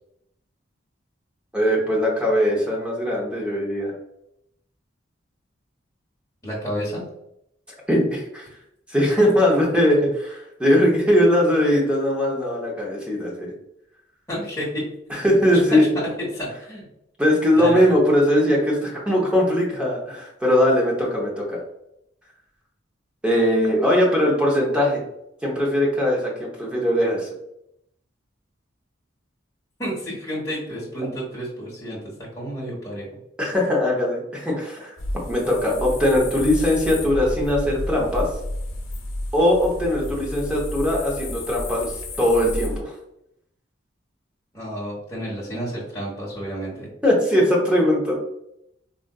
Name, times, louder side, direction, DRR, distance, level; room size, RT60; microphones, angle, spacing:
voice 1, 1.5-3.9 7.9-8.5 8.9-13.5 15.1-15.8 17.2-21.6 23.2-25.0 25.4-27.3 33.4-35.0 35.3-38.3 39.3-42.9 47.0-48.2, left 1 dB, 5° right, -3 dB, 0.7 m, -20 dB
voice 2, 6.4-7.0 14.3-14.8 15.1-15.2 15.7-16.9 17.5-17.9 29.8-33.1 44.5-46.9, equal, 15° left, -7 dB, 1.0 m, -30 dB
sound 1, 35.0-42.8, left 1 dB, 85° left, 0.6 m, -31 dB
3.7 x 2.4 x 2.3 m, 0.78 s
head